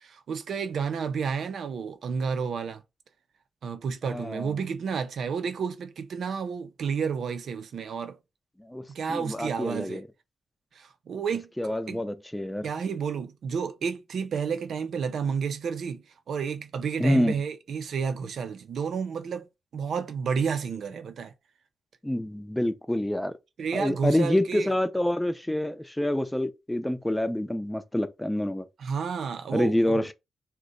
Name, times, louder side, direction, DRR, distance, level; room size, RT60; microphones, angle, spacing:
voice 1, 0.0-2.8 3.6-8.2 8.9-10.0 10.7-12.0 12.6-19.5 19.7-21.3 23.6-24.7 28.8-30.1, right 6 dB, 70° right, 0.4 m, -31 dB
voice 2, 4.1-4.6 8.6-8.8 9.1-10.0 11.6-12.7 17.0-17.3 22.0-23.3 23.7-28.6 29.5-30.1, left 1 dB, 10° left, 0.5 m, -27 dB
2.5 x 2.1 x 3.8 m
supercardioid pair, 55°, 0 cm